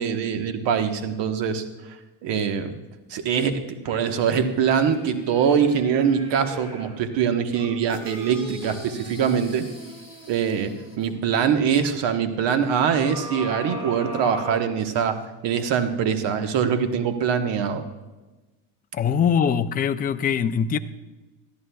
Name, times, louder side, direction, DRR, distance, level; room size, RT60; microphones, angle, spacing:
voice 1, 0.0-1.6 2.2-2.7 3.1-9.6 10.3-15.1 15.4-17.8, right 7 dB, 55° right, 1.3 m, -23 dB
sound 1, 3.8-7.0 7.5-11.2 12.9-15.2 15.8-15.9, equal, 10° right, 2.5 m, -39 dB
voice 2, 18.9-20.8, left 7 dB, 20° left, 0.3 m, -22 dB
20.5 x 13.5 x 2.3 m
supercardioid pair, 115°, 50 cm